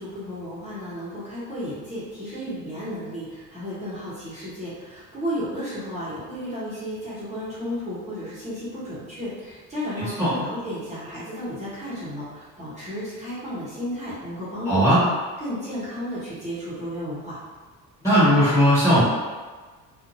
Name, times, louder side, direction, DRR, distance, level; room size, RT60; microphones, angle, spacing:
voice 1, 0.0-15.1 15.4-17.4, equal, 20° right, -11 dB, 0.9 m, -33 dB
voice 2, 14.6-15.0 18.0-19.0, equal, 10° left, -13 dB, 1.4 m, -17 dB
2.7 x 2.5 x 2.6 m, 1.4 s
cardioid pair, 130°, 35 cm